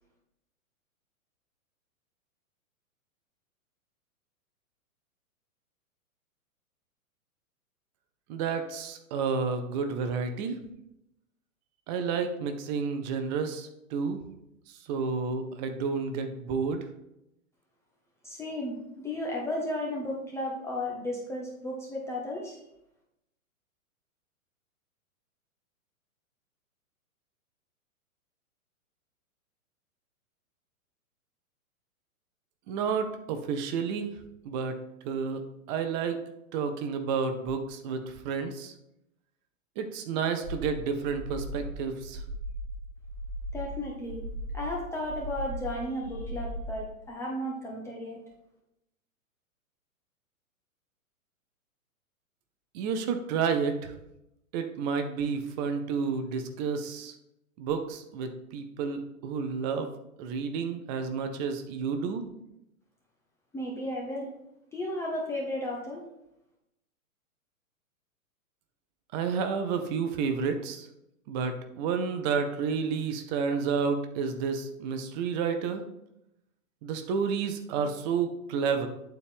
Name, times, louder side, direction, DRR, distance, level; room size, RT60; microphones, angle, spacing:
voice 1, 8.3-10.6 11.9-14.2 14.7-16.8 32.7-34.1 34.4-34.8 35.0-36.2 36.5-38.7 39.8-42.2 52.7-53.9 54.5-57.1 57.6-62.2 69.1-70.9 71.3-75.8 76.8-78.9, right 5 dB, 30° right, 7 dB, 0.7 m, -30 dB
voice 2, 18.2-22.6 43.5-44.2 44.5-48.2 63.5-64.3 64.7-66.0, left 1 dB, 5° left, -3 dB, 0.5 m, -34 dB
sound 1, 40.4-46.9, equal, 45° right, 1.0 m, -38 dB
9.3 x 4.4 x 3.5 m, 0.84 s
hypercardioid pair, 120°, 43 cm